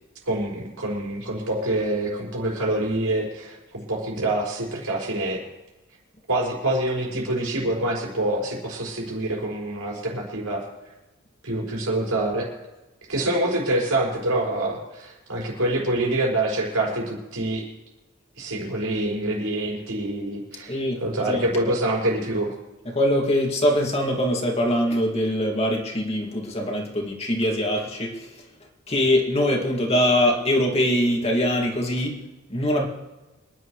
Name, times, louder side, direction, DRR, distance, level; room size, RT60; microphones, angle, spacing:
voice 1, 0.3-5.4 6.3-10.6 11.4-12.5 13.1-17.6 18.4-20.7 21.0-22.5, right 1 dB, 80° right, -2 dB, 5.6 m, -26 dB
voice 2, 20.7-21.7 22.9-28.3 28.9-32.2 32.5-32.9, left 1 dB, 30° left, 0 dB, 2.3 m, -23 dB
27.0 x 11.0 x 3.3 m, 1.1 s
head